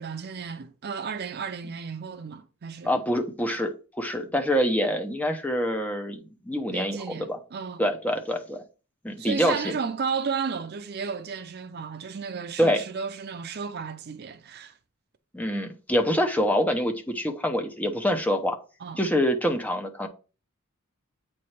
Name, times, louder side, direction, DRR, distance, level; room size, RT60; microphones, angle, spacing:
voice 1, 0.0-2.9 6.7-7.8 9.2-14.7 18.8-19.0, right 5 dB, 50° right, 0.5 m, -33 dB
voice 2, 2.8-3.7 4.0-7.4 7.8-8.6 9.0-9.8 12.6-12.8 15.3-18.6 19.0-20.1, equal, 5° left, 0.8 m, -25 dB
8.3 x 3.2 x 4.4 m
head